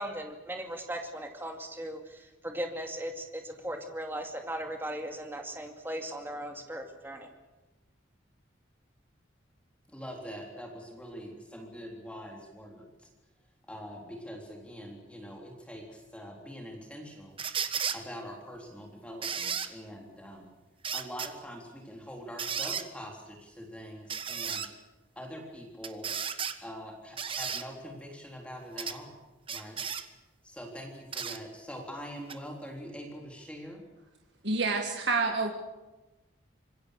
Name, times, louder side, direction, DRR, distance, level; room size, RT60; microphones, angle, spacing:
voice 1, 0.0-7.3, right 1 dB, 10° right, 3 dB, 2.4 m, -38 dB
voice 2, 9.9-13.1 13.7-17.4 17.9-20.5 20.9-24.7 25.2-26.1 26.6-29.1 29.5-29.8 30.4-33.8, equal, 5° left, 0 dB, 3.6 m, -44 dB
sound 1, 17.4-18.0 19.2-19.7 20.8-21.3 22.4-22.9 24.1-24.7 25.8-26.6 27.2-27.6 28.8-29.0 29.5-30.0 31.1-31.4 32.3-32.4, right 7 dB, 25° right, 1.3 m, -34 dB
voice 3, 34.4-35.5, right 3 dB, 60° right, 3 dB, 1.9 m, -28 dB
26.0 x 21.5 x 6.6 m, 1.1 s
head